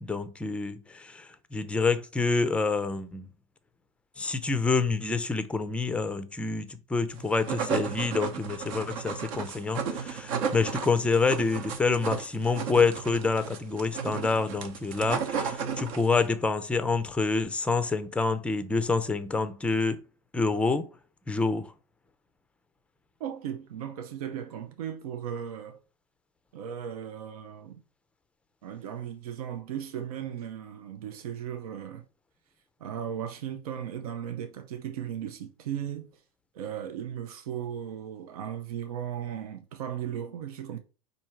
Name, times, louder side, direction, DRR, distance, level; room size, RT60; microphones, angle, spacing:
voice 1, 0.0-1.3 1.5-3.2 4.2-20.0 20.3-20.9 21.3-21.7, left 4 dB, 5° left, 0.4 m, -27 dB
sound 1, 7.2-16.3, right 6 dB, 65° right, 1.0 m, -34 dB
voice 2, 23.2-25.8 26.5-27.8 28.6-32.0 32.8-36.1 36.5-40.8, right 9 dB, 90° right, 0.6 m, -36 dB
4.4 x 2.7 x 4.4 m
supercardioid pair, 135°, 18 cm